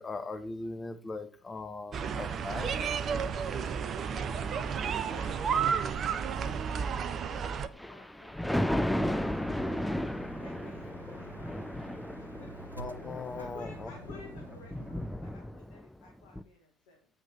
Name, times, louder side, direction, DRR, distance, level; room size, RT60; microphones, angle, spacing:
voice 1, 0.0-2.9 11.1-11.2 12.8-13.9, left 3 dB, 25° left, 1.1 m, -40 dB
sound 1, 1.9-7.7, right 6 dB, 40° right, 0.6 m, -32 dB
voice 2, 3.8-9.9 10.4-12.6 13.1-17.2, left 4 dB, 65° left, 1.7 m, -55 dB
Thunder, 7.6-15.9 16.3-16.4, left 1 dB, 5° left, 0.5 m, -34 dB
sound 2, 8.9-15.4, right 1 dB, 90° right, 0.5 m, -50 dB
7.9 x 5.6 x 4.3 m
figure-of-eight pair, 60°, 0 cm